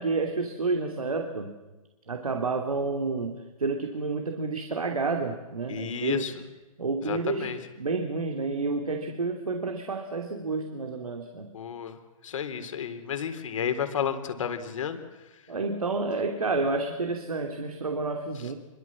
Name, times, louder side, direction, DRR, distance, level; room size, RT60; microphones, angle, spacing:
voice 1, 0.0-1.5 2.1-6.4 6.8-11.5 15.5-18.6, right 3 dB, 85° right, 4 dB, 3.0 m, -30 dB
voice 2, 5.7-6.3 7.0-7.6 11.5-12.0 12.2-15.0, left 7 dB, 65° left, 8 dB, 3.6 m, -31 dB
26.5 x 23.5 x 7.4 m, 1.1 s
hypercardioid pair, 125°, 18 cm